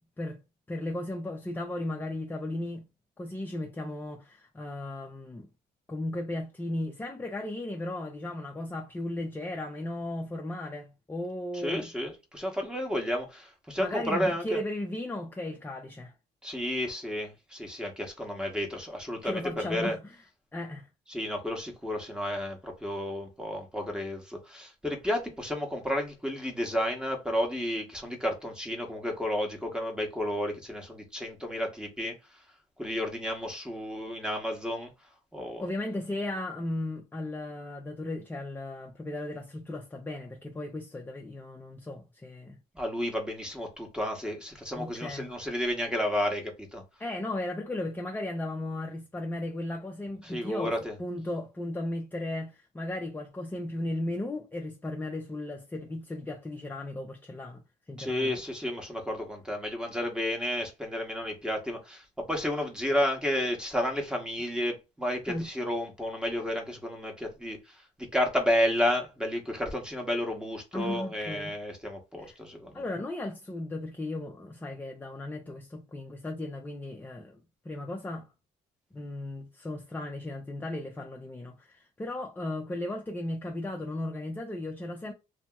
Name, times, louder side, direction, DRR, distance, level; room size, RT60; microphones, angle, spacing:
voice 1, 0.7-2.9 3.2-5.5 5.9-11.9 13.8-16.1 19.2-20.2 20.5-20.9 35.6-42.6 44.7-45.3 47.0-50.7 51.0-57.6 57.9-58.4 65.3-65.5 70.7-71.6 72.2-72.4 72.7-77.4 77.6-78.3 78.9-85.1, left 1 dB, 10° left, 0.5 m, -36 dB
voice 2, 11.6-14.6 16.4-20.0 21.1-32.1 32.8-34.9 35.3-35.6 42.7-46.8 50.2-50.9 58.0-67.6 68.0-72.8, left 1 dB, 5° right, 1.0 m, -31 dB
2.8 x 2.7 x 2.3 m
cardioid pair, 110°, 17 cm